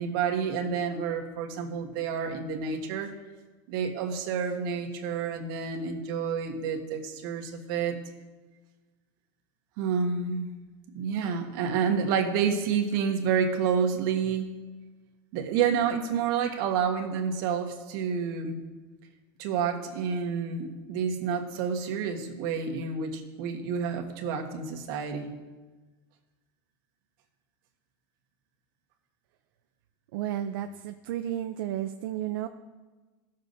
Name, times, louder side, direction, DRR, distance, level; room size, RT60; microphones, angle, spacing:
voice 1, 0.0-3.1 3.7-7.9 9.8-10.5 10.9-14.5 15.3-18.6 19.4-25.3, right 6 dB, 65° right, 2 dB, 1.5 m, -29 dB
voice 2, 30.1-32.5, right 11 dB, 80° right, 7 dB, 0.5 m, -32 dB
17.5 x 6.7 x 2.7 m, 1.3 s
supercardioid pair, 160°, 12 cm